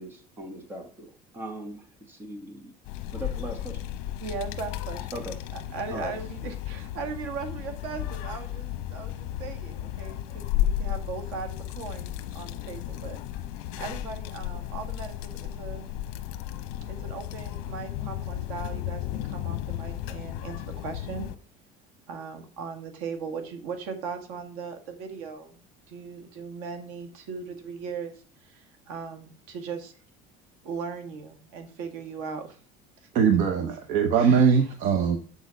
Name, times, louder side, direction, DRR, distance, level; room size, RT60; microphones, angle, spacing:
voice 1, 0.0-2.7 3.1-3.8 5.1-5.4 5.9-6.1, right 1 dB, 15° right, 5 dB, 1.2 m, -39 dB
sound 1, 2.8-21.4, left 12 dB, 75° left, 0.9 m, -34 dB
voice 2, 4.2-13.2 13.8-15.9 16.9-21.3 22.1-29.9 30.6-32.6 33.0-33.1 34.2-34.5, right 5 dB, 90° right, 7 dB, 1.9 m, -38 dB
voice 3, 33.1-35.2, right 6 dB, 50° right, 6 dB, 0.9 m, -21 dB
8.4 x 6.4 x 5.2 m, 0.43 s
cardioid pair, 180°, 16 cm